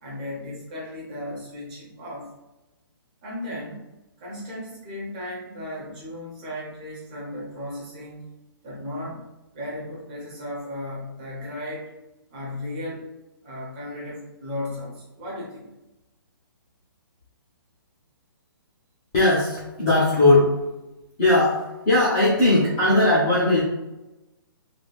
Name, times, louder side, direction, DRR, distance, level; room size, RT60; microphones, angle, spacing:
voice 1, 0.0-2.3 3.2-3.9 4.2-8.3 8.6-9.2 9.5-11.9 12.3-13.1 13.4-15.7, left 1 dB, 20° right, -6 dB, 0.9 m, -35 dB
voice 2, 19.1-20.6 21.2-23.6, left 2 dB, 10° left, -11 dB, 0.3 m, -19 dB
3.2 x 3.1 x 2.3 m, 1.0 s
hypercardioid pair, 180°, 13 cm